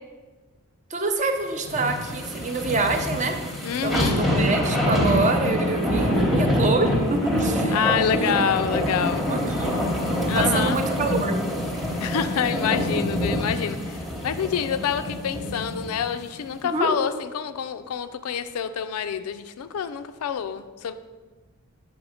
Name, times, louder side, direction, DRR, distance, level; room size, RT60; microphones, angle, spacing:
voice 1, 0.9-3.4 3.8-7.8 8.1-8.4 9.3-9.7 10.3-11.4 16.7-16.9, right 3 dB, 35° right, 5 dB, 0.5 m, -26 dB
sound 1, 1.6-16.1 16.5-16.6, left 1 dB, ahead, 0.8 m, -25 dB
voice 2, 3.6-4.2 7.7-9.3 10.2-10.8 12.0-20.9, left 7 dB, 85° left, 11 dB, 0.4 m, -27 dB
6.2 x 3.5 x 4.9 m, 1.3 s
head